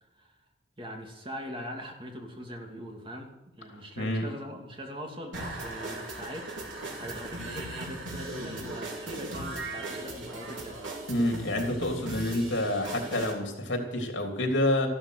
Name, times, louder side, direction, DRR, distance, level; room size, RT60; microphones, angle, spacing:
voice 1, 0.8-6.5 7.0-10.8, equal, 30° right, 2 dB, 2.7 m, -41 dB
voice 2, 4.0-4.3 11.1-14.9, left 1 dB, 70° left, 3 dB, 3.3 m, -28 dB
sound 1, 5.3-13.3, right 2 dB, 90° right, 4.3 m, -38 dB
14.5 x 12.5 x 6.7 m, 0.98 s
head